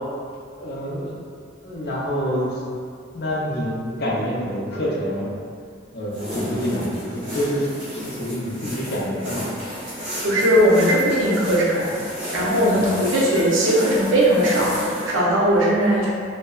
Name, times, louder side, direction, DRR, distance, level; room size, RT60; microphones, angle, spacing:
voice 1, 0.6-1.1 1.6-2.6 3.1-5.3 5.9-9.5 12.7-12.9, equal, 55° left, -5 dB, 0.5 m, -27 dB
sound 1, 6.1-15.2, equal, 60° right, 0.9 m, -32 dB
voice 2, 10.2-11.9 12.3-16.1, equal, 90° right, -5 dB, 0.6 m, -19 dB
2.6 x 2.1 x 2.3 m, 2.2 s
head